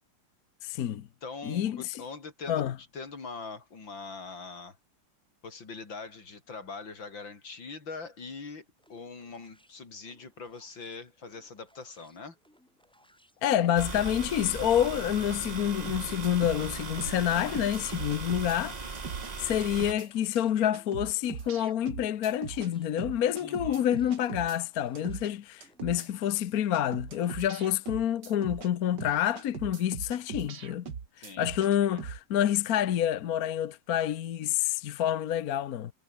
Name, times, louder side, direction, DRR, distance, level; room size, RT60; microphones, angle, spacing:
voice 1, 0.6-1.1 1.4-2.0 2.5-2.7 13.4-18.8 19.4-30.9 31.2-35.9, left 11 dB, 60° left, 1.2 m, -28 dB
voice 2, 1.2-4.8 5.4-12.4 23.4-23.9 31.2-31.5 31.8-32.0, left 4 dB, 80° left, 4.5 m, -42 dB
sound 1, 8.8-27.8, equal, ahead, 6.7 m, -65 dB
sound 2, 13.8-19.9, right 4 dB, 25° right, 1.2 m, -38 dB
sound 3, 15.9-16.7 17.0-18.6 18.9-19.3 19.6-20.1 20.4-20.5 20.7-22.7 23.0-24.6 24.9-25.3 25.6-26.1 26.4-26.5 26.7-28.7 29.0-31.7 32.0-32.2, right 6 dB, 60° right, 2.5 m, -40 dB
omnidirectional pair, 2.1 m